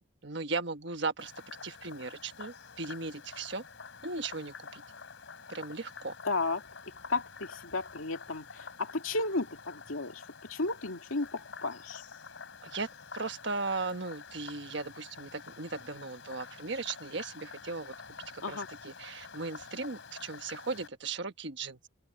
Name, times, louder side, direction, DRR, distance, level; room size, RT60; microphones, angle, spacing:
voice 1, 0.2-3.6 4.0-4.8 5.5-6.1 12.6-12.9 13.1-17.9 18.3-18.6 18.8-21.9, right 3 dB, 60° right, 1.4 m, -37 dB
Frog, 1.2-20.9, left 5 dB, 70° left, 3.7 m, -48 dB
voice 2, 6.2-6.6 7.1-10.2 10.5-12.0 18.4-18.7, left 3 dB, 90° left, 2.3 m, -33 dB
open air
head